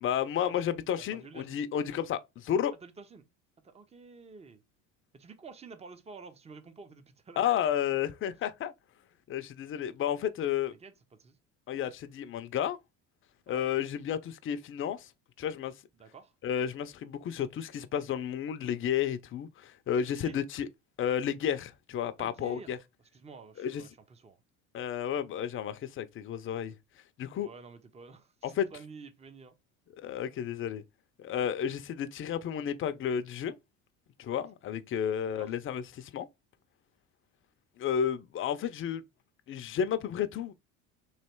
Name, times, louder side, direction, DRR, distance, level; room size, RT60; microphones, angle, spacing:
voice 1, 0.0-2.7 7.4-8.7 9.3-10.7 11.7-12.8 13.5-15.1 15.4-15.7 16.4-20.7 21.0-22.8 23.6-23.8 24.7-26.7 27.2-27.5 28.4-28.7 30.0-30.8 31.2-33.5 34.2-36.3 37.8-39.0 39.5-40.5, left 9 dB, 35° left, 0.6 m, -32 dB
voice 2, 1.1-1.5 2.8-3.2 3.6-4.6 5.1-7.4 10.8-11.4 13.5-13.7 16.0-16.3 20.1-20.4 22.2-22.8 23.1-24.4 27.4-29.6 35.4-35.5, right 4 dB, 20° right, 0.7 m, -50 dB
3.2 x 2.9 x 4.4 m
supercardioid pair, 90°, 34 cm